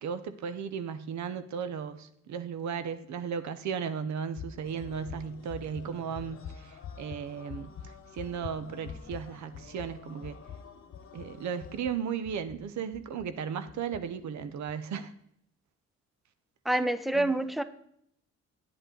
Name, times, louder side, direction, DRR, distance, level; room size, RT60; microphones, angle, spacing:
voice 1, 0.0-10.4 11.1-15.1 17.1-17.3, right 7 dB, 70° right, 0.7 m, -36 dB
sound 1, 4.3-13.3 13.7-14.0 14.4-14.7, left 8 dB, 60° left, 0.8 m, -45 dB
sound 2, 4.6-11.8, left 6 dB, 45° left, 1.2 m, -53 dB
voice 2, 16.6-17.6, right 1 dB, ahead, 0.5 m, -27 dB
9.6 x 8.1 x 3.8 m
cardioid pair, 100°, 29 cm